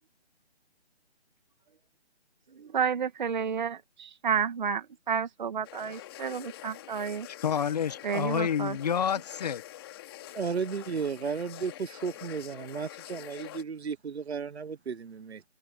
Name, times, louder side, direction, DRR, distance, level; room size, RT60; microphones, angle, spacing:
voice 1, 2.5-7.3 8.0-8.8, right 7 dB, 45° right, 2.4 m, -31 dB
sound 1, 5.6-13.6, left 14 dB, 20° left, 2.7 m, -46 dB
voice 2, 7.4-9.6, left 8 dB, 35° left, 1.6 m, -28 dB
voice 3, 10.3-15.4, right 5 dB, 70° right, 1.2 m, -34 dB
hypercardioid pair, 160°, 33 cm